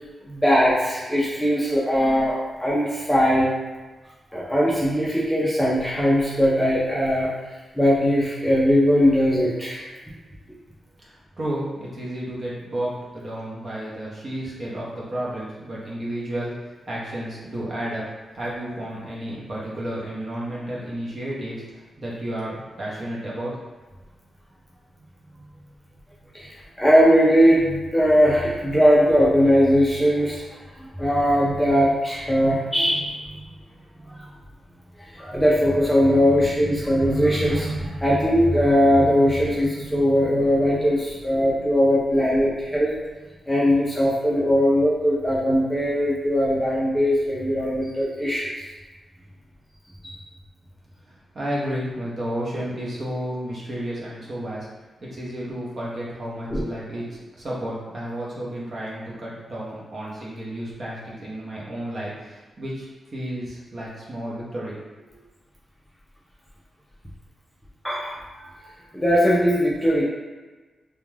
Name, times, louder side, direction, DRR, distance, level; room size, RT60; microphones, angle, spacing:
voice 1, 0.2-3.5 4.3-7.3 7.7-9.9 26.3-30.4 30.8-33.2 34.1-34.2 35.1-42.9 43.5-48.5 50.0-50.1 56.5-56.6 67.8-68.6 68.9-70.0, equal, 5° left, -6 dB, 0.4 m, -20 dB
voice 2, 11.0-23.6 51.1-54.7 55.0-64.8 65.1-65.2, right 1 dB, 35° right, -6 dB, 0.7 m, -32 dB
2.4 x 2.1 x 3.1 m, 1.3 s
wide cardioid pair, 160°, 0 cm